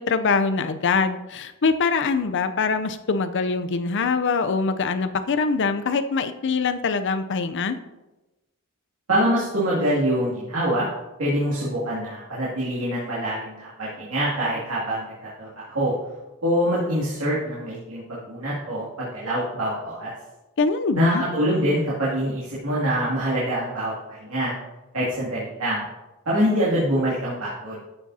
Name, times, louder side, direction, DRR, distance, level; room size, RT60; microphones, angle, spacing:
voice 1, 0.0-7.8 20.6-21.2, left 4 dB, 55° left, 10 dB, 0.6 m, -23 dB
voice 2, 9.1-10.9 11.2-15.9 16.4-20.1 21.0-24.5 24.9-25.8 26.3-27.8, equal, 70° right, -8 dB, 2.4 m, -25 dB
13.5 x 7.3 x 2.8 m, 1.1 s
head